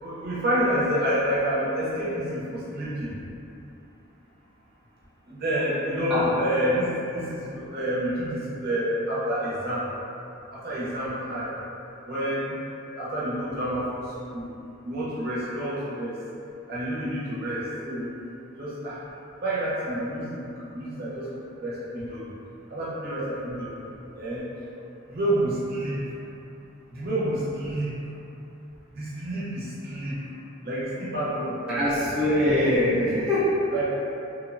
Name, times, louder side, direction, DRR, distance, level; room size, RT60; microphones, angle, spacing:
voice 1, 0.0-3.2 5.3-9.9 10.5-11.5 12.1-12.6 12.9-13.9 14.3-14.5 14.8-16.2 16.7-18.1 18.5-19.0 19.4-20.4 20.7-21.3 21.6-22.2 22.7-23.7 24.2-24.4 25.1-26.0 26.9-27.9 28.9-30.2 30.6-31.9 33.7-33.8, equal, 50° right, -8 dB, 0.6 m, -28 dB
voice 2, 31.7-33.7, left 1 dB, 5° right, -13 dB, 0.4 m, -23 dB
2.8 x 2.0 x 2.5 m, 2.8 s
head